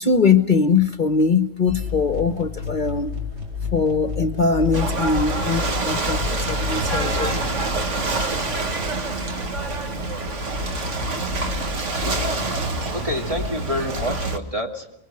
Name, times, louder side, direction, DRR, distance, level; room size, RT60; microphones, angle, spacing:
voice 1, 0.0-3.1 3.7-7.4, left 5 dB, 45° left, 10 dB, 1.1 m, -21 dB
sound 1, 1.7-8.3, left 6 dB, 70° right, 2.9 m, -31 dB
Ocean / Boat Water vehicle, 4.7-14.4, right 2 dB, 85° right, 2.1 m, -26 dB
voice 2, 12.9-15.0, left 1 dB, 30° right, 2 dB, 2.8 m, -28 dB
25.5 x 23.5 x 6.4 m, 0.82 s
omnidirectional pair, 1.2 m